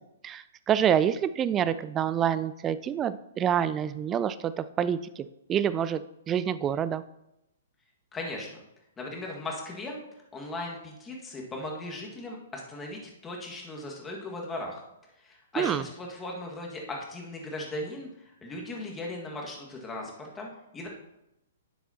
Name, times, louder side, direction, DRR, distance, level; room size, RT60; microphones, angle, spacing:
voice 1, 0.2-7.0 15.6-15.8, right 9 dB, 20° right, 15 dB, 0.3 m, -27 dB
voice 2, 8.1-8.6 9.0-10.0 10.3-14.8 15.2-20.9, left 2 dB, 15° left, -1 dB, 1.8 m, -38 dB
10.5 x 6.8 x 2.9 m, 0.86 s
figure-of-eight pair, 120°, 0 cm